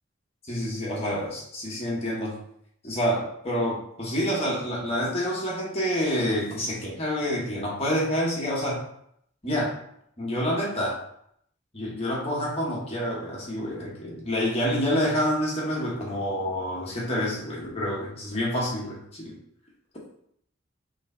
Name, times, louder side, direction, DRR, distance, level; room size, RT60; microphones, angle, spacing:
voice 1, 0.5-2.4 2.8-8.9 9.4-9.7 10.2-11.0 11.7-19.3, equal, 30° left, -5 dB, 1.1 m, -28 dB
3.3 x 3.1 x 4.2 m, 0.70 s
head